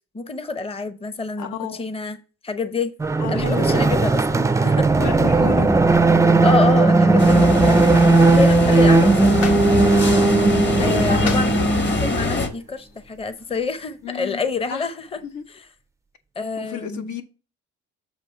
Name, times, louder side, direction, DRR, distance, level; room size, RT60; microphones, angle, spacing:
voice 1, 0.1-2.2 2.4-2.9 3.3-4.9 6.4-7.9 8.3-9.2 10.8-11.5 11.8-15.2 15.5-15.6 16.4-17.1, left 4 dB, 20° left, 0.7 m, -27 dB
voice 2, 1.4-1.8 3.2-3.8 5.0-5.9 10.8-11.2 14.0-14.4 14.7-14.9 15.2-15.4 16.6-17.2, left 9 dB, 75° left, 1.0 m, -31 dB
sound 1, 3.0-12.2, right 3 dB, 10° right, 0.3 m, -17 dB
sound 2, 7.2-12.5, left 3 dB, 35° left, 1.3 m, -23 dB
sound 3, 12.0-13.6, left 5 dB, 55° left, 1.2 m, -39 dB
7.4 x 3.0 x 5.5 m
cardioid pair, 90°, 30 cm